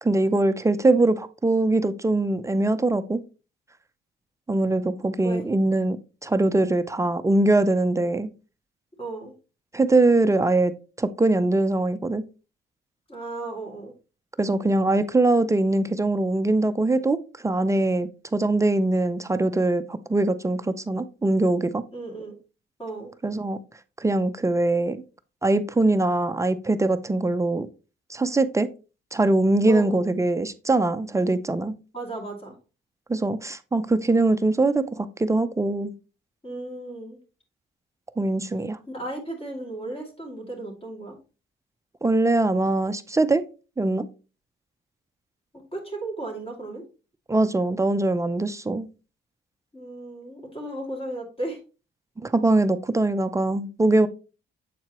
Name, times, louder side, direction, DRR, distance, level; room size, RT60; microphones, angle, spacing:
voice 1, 0.0-3.2 4.5-6.0 6.2-8.3 9.7-10.7 11.0-12.2 14.4-21.8 23.2-23.6 24.0-25.0 25.4-27.7 28.1-28.7 29.1-31.7 33.1-35.9 38.2-38.8 42.0-43.4 43.8-44.1 47.3-48.9 52.2-54.1, right 2 dB, 15° right, 11 dB, 0.5 m, -22 dB
voice 2, 9.0-9.3 13.1-13.9 21.9-22.4 22.8-23.1 29.7-30.0 31.9-32.6 36.4-37.2 38.9-41.2 45.7-46.8 49.7-51.6, right 2 dB, 30° left, 0 dB, 2.4 m, -35 dB
7.5 x 4.4 x 2.9 m, 0.34 s
cardioid pair, 90°, 20 cm